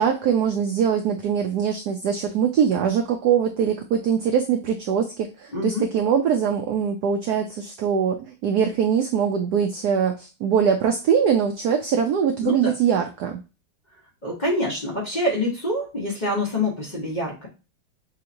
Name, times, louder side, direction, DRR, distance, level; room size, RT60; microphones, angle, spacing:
voice 1, 0.0-13.4, right 7 dB, 80° right, 4 dB, 0.8 m, -22 dB
voice 2, 5.5-5.8 12.4-12.7 14.2-17.5, left 1 dB, 25° left, -3 dB, 1.1 m, -26 dB
5.5 x 2.9 x 2.6 m, 0.29 s
omnidirectional pair, 2.3 m